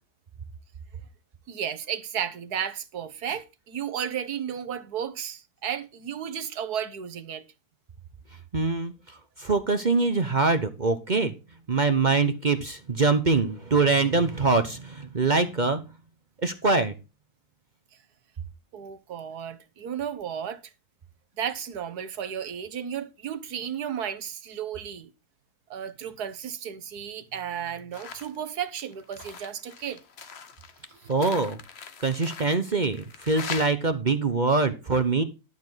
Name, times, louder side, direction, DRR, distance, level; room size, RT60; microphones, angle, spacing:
voice 1, 1.5-7.4 18.7-20.6 21.4-25.1 25.7-30.0 30.9-31.1, right 8 dB, 85° right, 1.6 m, -33 dB
voice 2, 8.5-8.9 9.4-11.3 11.7-15.8 16.4-16.9 31.1-31.6 32.0-35.2, right 3 dB, 35° right, 0.9 m, -23 dB
sound 1, 27.9-28.4 28.7-33.7, left 6 dB, 45° left, 1.2 m, -41 dB
12.0 x 7.0 x 4.0 m
omnidirectional pair, 1.6 m